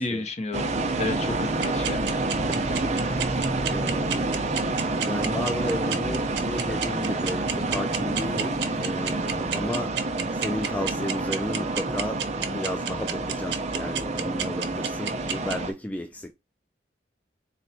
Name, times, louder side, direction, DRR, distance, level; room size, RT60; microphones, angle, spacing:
voice 1, 0.0-2.0, left 2 dB, 40° left, 0.7 m, -31 dB
sound 1, 0.5-15.7, right 2 dB, 40° right, 0.6 m, -28 dB
sound 2, 1.6-15.5, right 8 dB, 85° right, 0.7 m, -29 dB
voice 2, 2.4-4.4 4.8-16.3, left 1 dB, 10° left, 0.3 m, -34 dB
sound 3, 5.2-7.4 8.1-10.3, left 4 dB, 75° left, 0.8 m, -47 dB
4.1 x 2.2 x 4.0 m
head